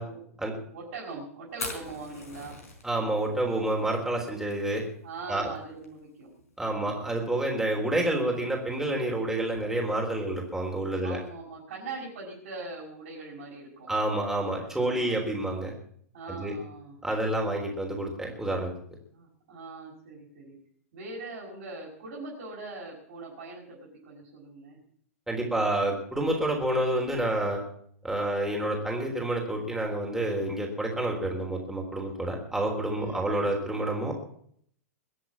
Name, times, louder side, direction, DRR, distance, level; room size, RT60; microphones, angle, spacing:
voice 1, 0.7-2.6 5.0-6.3 11.0-13.9 14.6-15.3 16.1-17.0 19.1-20.6 20.9-24.8 32.9-33.5, right 3 dB, 60° right, -4 dB, 6.0 m, -41 dB
Fire, 1.5-11.3, left 3 dB, 80° left, 4.7 m, -46 dB
voice 2, 2.8-4.8 5.3-5.5 6.6-11.2 13.9-15.7 16.3-16.5 17.0-18.7 25.3-27.6 28.0-34.1, right 1 dB, 5° right, -1 dB, 3.7 m, -28 dB
22.5 x 7.6 x 7.3 m, 0.64 s
hypercardioid pair, 105°, 8 cm